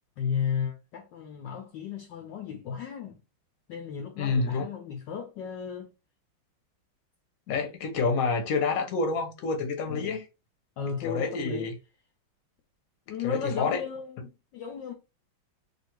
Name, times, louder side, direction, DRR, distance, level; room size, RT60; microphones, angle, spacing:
voice 1, 0.2-3.2 3.7-5.9 9.9-10.2 10.8-11.7 13.1-14.9, left 7 dB, 70° left, 1.2 m, -34 dB
voice 2, 4.2-4.6 7.5-10.2 11.0-11.7 13.2-13.8, left 4 dB, 50° left, 1.2 m, -28 dB
3.1 x 2.7 x 4.4 m
omnidirectional pair, 2.2 m